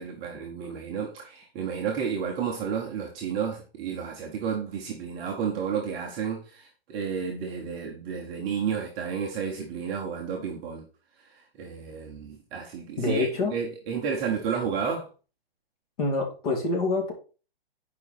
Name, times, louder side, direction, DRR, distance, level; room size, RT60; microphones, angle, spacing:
voice 1, 0.0-10.8 11.6-15.1, right 7 dB, 15° right, 0.8 m, -31 dB
voice 2, 13.0-13.5 16.0-17.1, left 3 dB, 40° left, 2.7 m, -26 dB
9.8 x 5.1 x 4.2 m
hypercardioid pair, 165°, 30 cm